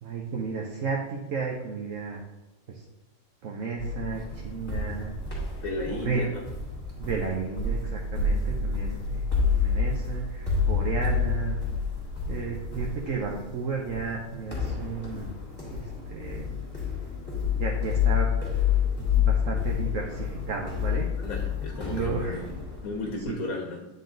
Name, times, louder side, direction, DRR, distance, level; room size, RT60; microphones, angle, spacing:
voice 1, 0.0-2.2 2.7-2.8 3.4-5.1 5.9-6.3 7.0-11.6 12.3-15.3 15.7-16.6 17.5-18.6 19.0-21.1 21.7-22.4 23.3-23.4, right 5 dB, 65° right, 0 dB, 1.2 m, -33 dB
sound 1, 3.8-23.3, left 6 dB, 25° left, 2.2 m, -29 dB
voice 2, 5.6-6.4 21.2-22.5 22.8-23.9, left 2 dB, 75° left, 1 dB, 1.4 m, -34 dB
9.5 x 4.0 x 3.9 m, 1.0 s
omnidirectional pair, 1.5 m